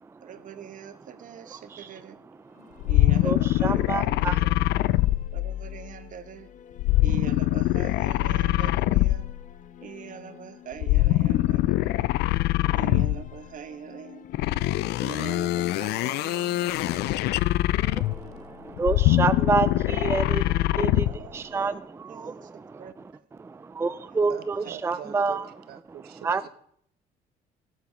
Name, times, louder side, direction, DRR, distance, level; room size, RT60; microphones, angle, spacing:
voice 1, 0.2-2.2 2.9-4.6 5.3-6.5 7.0-9.3 9.8-12.1 12.7-14.3 15.0-17.3 17.9-18.6 20.6-21.8 22.1-23.3 24.0-24.2 24.9-25.1, right 7 dB, 50° right, 1.3 m, -42 dB
sound 1, 2.3-20.3, left 8 dB, 50° left, 0.9 m, -49 dB
sound 2, 2.8-5.9 6.8-9.5 10.8-13.4 14.3-18.3 18.8-21.3, left 16 dB, 80° left, 0.4 m, -23 dB
voice 2, 3.2-4.4 18.0-22.9 23.4-25.5 26.2-26.5, right 4 dB, 15° right, 0.4 m, -29 dB
voice 3, 24.3-26.5, right 10 dB, 70° right, 1.3 m, -43 dB
16.5 x 7.8 x 5.2 m
cardioid pair, 110°, 17 cm